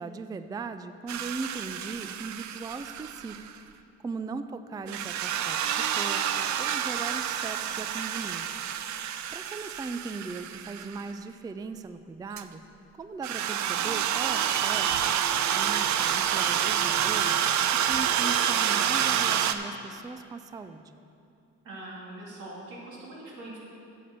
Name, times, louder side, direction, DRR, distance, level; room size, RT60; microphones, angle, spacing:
voice 1, 0.0-3.5 4.0-8.4 9.0-12.6 13.0-15.1 15.5-21.0, right 4 dB, 15° right, 10 dB, 0.3 m, -39 dB
sound 1, 1.1-3.6 4.9-11.0 12.4-12.5 13.2-19.5, right 9 dB, 70° right, 0.5 m, -28 dB
voice 2, 21.6-23.6, right 1 dB, 85° right, -4 dB, 2.4 m, -42 dB
8.5 x 7.0 x 6.6 m, 2.7 s
cardioid pair, 90°, 30 cm